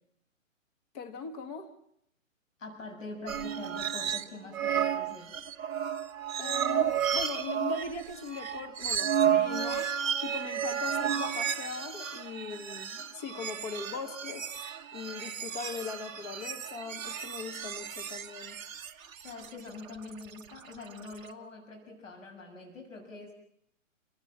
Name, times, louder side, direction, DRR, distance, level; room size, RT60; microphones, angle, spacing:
voice 1, 0.9-1.7 6.4-14.5 14.9-18.6, left 5 dB, 30° left, 1.7 m, -40 dB
voice 2, 2.6-5.4 19.2-23.3, left 3 dB, 70° left, 7.1 m, -44 dB
sound 1, 3.3-4.3 4.5-21.3, right 8 dB, 15° right, 0.9 m, -32 dB
29.0 x 16.5 x 7.5 m
hypercardioid pair, 145°, 40 cm